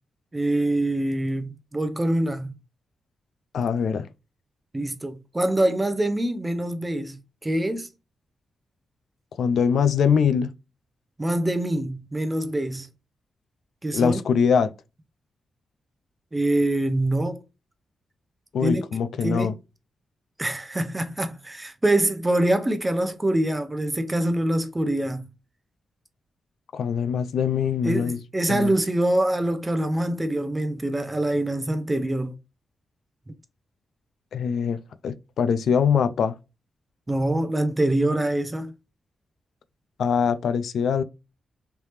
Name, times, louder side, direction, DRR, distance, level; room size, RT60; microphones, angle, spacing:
voice 1, 0.3-2.5 3.6-3.7 4.7-7.2 7.4-7.9 11.2-12.9 13.8-14.2 16.3-17.4 18.6-18.9 19.2-19.5 20.4-25.3 27.8-32.4 37.1-38.7, right 1 dB, 20° right, 0.6 m, -24 dB
voice 2, 3.5-4.1 9.4-10.5 13.9-14.7 18.5-19.5 26.7-28.2 28.5-28.7 34.3-34.8 35.0-36.3 40.0-41.0, left 7 dB, 80° left, 0.4 m, -22 dB
3.3 x 2.8 x 3.1 m
cardioid pair, 80°, 0 cm